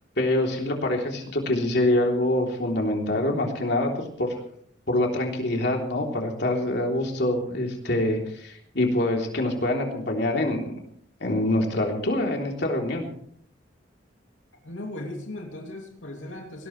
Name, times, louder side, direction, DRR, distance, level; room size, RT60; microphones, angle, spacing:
voice 1, 0.2-4.3 4.9-10.8 11.2-13.1, left 1 dB, 60° left, 1 dB, 3.3 m, -25 dB
voice 2, 14.6-16.7, left 1 dB, 85° left, 1 dB, 2.7 m, -37 dB
20.0 x 18.0 x 3.3 m, 0.64 s
head